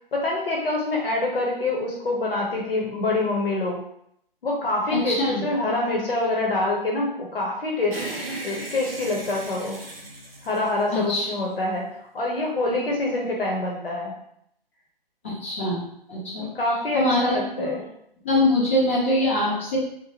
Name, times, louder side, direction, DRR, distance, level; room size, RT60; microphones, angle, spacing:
voice 1, 0.1-3.8 4.4-8.0 8.4-9.8 10.4-14.1 16.4-17.9, left 2 dB, 75° left, -2 dB, 0.9 m, -26 dB
voice 2, 4.9-5.4 10.9-11.3 15.2-15.8 16.1-16.5 16.9-17.7 18.2-19.8, left 1 dB, 15° left, -7 dB, 0.4 m, -23 dB
sound 1, 7.9-11.4, right 2 dB, 90° right, 0.8 m, -36 dB
2.8 x 2.1 x 2.8 m, 0.72 s
figure-of-eight pair, 140°, 29 cm